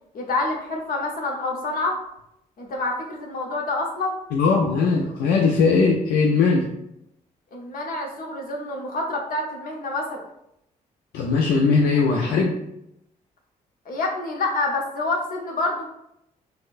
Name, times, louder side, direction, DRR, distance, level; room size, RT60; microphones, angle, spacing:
voice 1, 0.1-2.0 2.6-4.2 7.5-10.2 13.9-15.9, left 2 dB, 65° left, 0 dB, 0.8 m, -27 dB
voice 2, 4.3-6.6 11.1-12.6, left 4 dB, 80° left, 0 dB, 0.4 m, -19 dB
4.2 x 2.1 x 2.4 m, 0.79 s
supercardioid pair, 65°, 16 cm